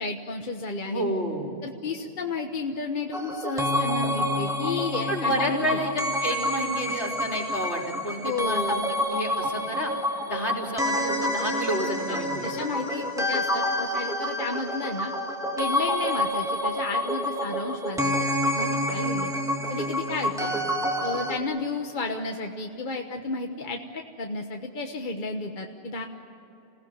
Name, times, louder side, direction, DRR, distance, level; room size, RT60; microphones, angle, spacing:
voice 1, 0.0-1.0 1.6-5.8 8.2-8.9 12.1-15.1 15.6-18.1 18.4-19.3 19.7-20.5 21.0-26.0, left 3 dB, 45° left, 3 dB, 1.4 m, -32 dB
voice 2, 0.9-1.5 5.1-9.9 10.3-12.5 20.5-20.6, equal, 70° left, 0 dB, 3.9 m, -30 dB
sound 1, 3.1-21.4, left 1 dB, 5° right, 2.2 m, -28 dB
27.5 x 17.0 x 9.6 m, 2.9 s
omnidirectional pair, 1.2 m